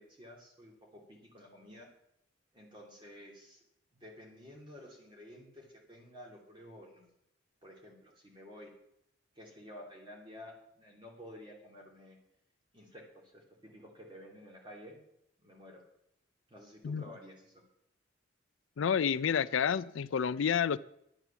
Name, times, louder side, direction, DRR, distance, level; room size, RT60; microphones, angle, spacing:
voice 1, 0.0-1.9 2.5-3.6 3.9-7.1 7.6-8.7 9.3-12.2 12.7-15.0 15.4-15.8 16.5-17.6, left 1 dB, 25° right, 2.7 m, -52 dB
voice 2, 18.8-20.8, left 7 dB, 75° left, 0.4 m, -29 dB
11.0 x 9.0 x 6.9 m
head